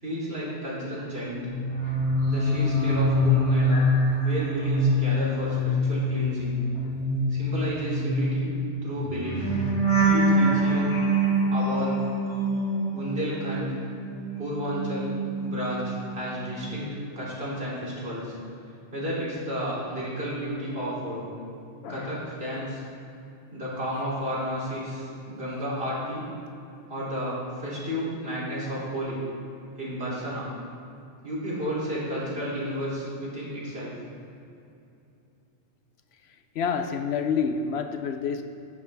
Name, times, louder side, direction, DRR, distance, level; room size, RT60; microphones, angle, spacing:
voice 1, 0.0-1.4 2.3-3.9 4.2-6.6 7.3-8.5 8.8-9.4 10.0-11.0 11.5-12.0 12.8-13.7 14.4-15.1 15.4-18.4 18.9-21.3 21.9-22.8 23.5-26.3 26.9-29.2 29.8-30.5 31.2-33.9, equal, 60° right, -7 dB, 3.1 m, -32 dB
sound 1, 1.4-13.6 13.9-16.0 16.3-16.7, equal, 90° left, 2.3 m, -25 dB
voice 2, 21.8-22.2 36.6-38.4, left 6 dB, 70° left, 7 dB, 0.8 m, -28 dB
10.5 x 10.5 x 3.4 m, 2.7 s
omnidirectional pair, 1.2 m